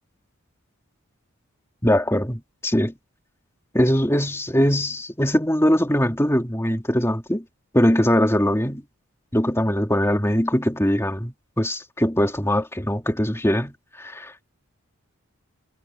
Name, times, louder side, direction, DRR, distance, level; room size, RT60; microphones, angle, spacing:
voice 1, 1.8-2.9 3.7-7.4 7.7-8.8 9.3-14.4, equal, 10° left, 3.0 m, -21 dB
head